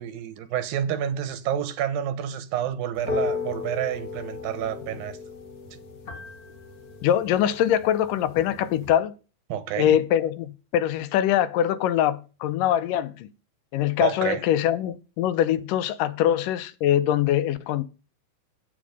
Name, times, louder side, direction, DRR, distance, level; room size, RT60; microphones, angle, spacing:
voice 1, 0.0-5.2 5.7-5.8 9.5-10.0 14.0-14.4, right 10 dB, 85° right, 2.9 m, -29 dB
sound 1, 3.0-9.0, left 4 dB, 60° left, 0.9 m, -35 dB
voice 2, 7.0-9.1 9.8-13.3 13.7-17.8, left 11 dB, 80° left, 2.2 m, -23 dB
10.0 x 8.6 x 5.2 m
omnidirectional pair, 4.0 m